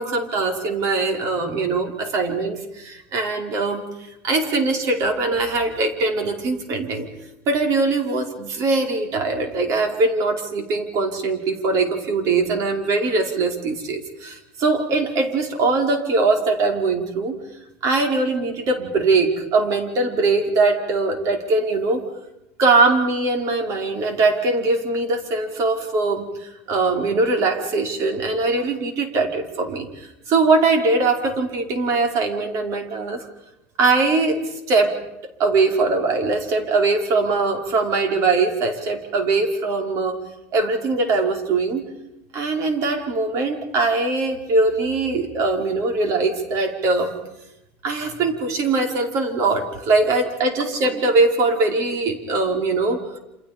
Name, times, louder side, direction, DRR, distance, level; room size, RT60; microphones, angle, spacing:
voice 1, 0.0-3.8 4.2-7.1 7.5-17.4 17.8-22.0 22.6-33.2 33.8-35.0 35.4-40.2 40.5-41.8 42.3-47.1 47.8-53.0, right 3 dB, 50° right, 4 dB, 5.1 m, -21 dB
28.5 x 28.0 x 5.3 m, 0.88 s
supercardioid pair, 125°, 7 cm